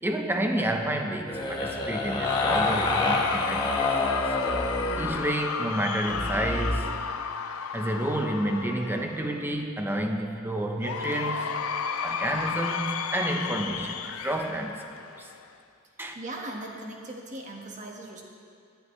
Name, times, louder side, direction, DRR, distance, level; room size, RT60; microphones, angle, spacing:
voice 1, 0.0-3.9 4.9-7.1 7.7-11.5 12.0-14.8 15.2-15.3 16.0-16.1, right 1 dB, 10° right, 3 dB, 0.9 m, -30 dB
sound 1, 1.3-5.2 6.1-6.8, left 2 dB, 20° left, 1.4 m, -27 dB
Cheering / Crowd, 2.2-9.5 10.8-15.5, left 6 dB, 85° left, 0.6 m, -33 dB
voice 2, 16.1-18.2, right 1 dB, 35° right, 0 dB, 1.7 m, -39 dB
18.5 x 11.5 x 3.3 m, 2.4 s
head